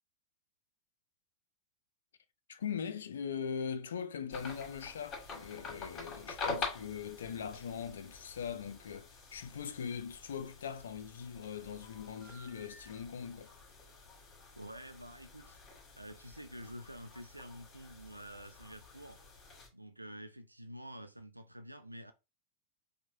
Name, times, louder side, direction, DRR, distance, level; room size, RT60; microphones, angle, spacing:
voice 1, 2.5-13.5, left 7 dB, 65° left, 0.4 m, -41 dB
sound 1, 4.3-19.7, left 4 dB, 25° left, 1.5 m, -46 dB
voice 2, 14.6-15.6 15.9-19.2 19.7-22.1, equal, 85° right, 0.3 m, -48 dB
4.6 x 2.2 x 2.6 m
figure-of-eight pair, 90°, 0 cm